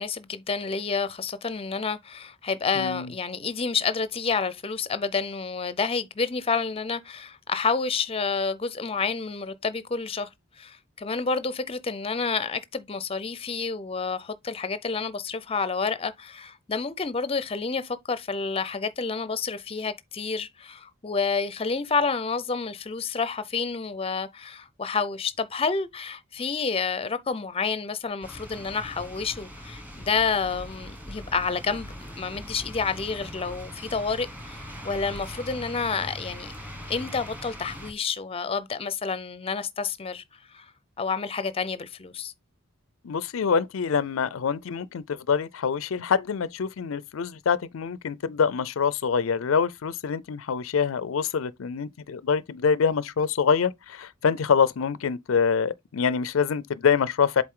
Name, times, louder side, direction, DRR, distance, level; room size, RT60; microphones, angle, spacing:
voice 1, 0.0-10.3 10.6-36.5 36.9-40.2 40.5-40.7 41.0-42.3, left 5 dB, 30° left, 0.6 m, -29 dB
voice 2, 2.7-3.1 43.0-57.4, left 6 dB, 85° left, 0.5 m, -25 dB
sound 1, 28.2-37.9, equal, 10° right, 1.6 m, -41 dB
7.6 x 3.9 x 3.7 m
head